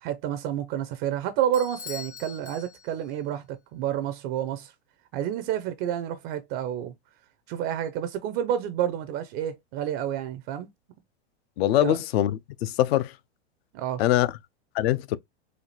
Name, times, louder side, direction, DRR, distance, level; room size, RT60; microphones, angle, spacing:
voice 1, 0.0-4.7 5.1-6.9 7.5-10.7 11.8-12.0 13.7-14.0, right 10 dB, 35° right, 0.4 m, -29 dB
Bell / Doorbell, 1.5-3.2, left 8 dB, 85° left, 0.8 m, -43 dB
voice 2, 11.6-13.1 14.0-14.3 14.7-15.2, left 14 dB, 65° left, 0.5 m, -23 dB
4.2 x 2.4 x 2.9 m
hypercardioid pair, 130°, 34 cm